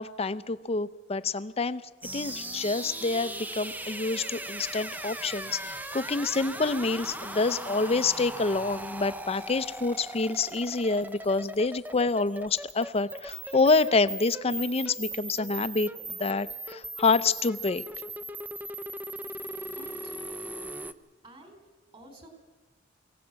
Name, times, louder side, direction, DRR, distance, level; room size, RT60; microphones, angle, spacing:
voice 1, 0.0-1.8 2.1-15.9 16.2-17.8, left 3 dB, 30° left, 14 dB, 0.6 m, -27 dB
sound 1, 2.0-20.9, right 1 dB, 10° right, 0.7 m, -39 dB
voice 2, 19.0-19.5 19.7-20.2 21.2-21.6 21.9-22.3, right 1 dB, 30° right, 5 dB, 4.3 m, -51 dB
23.5 x 17.0 x 7.5 m, 1.3 s
head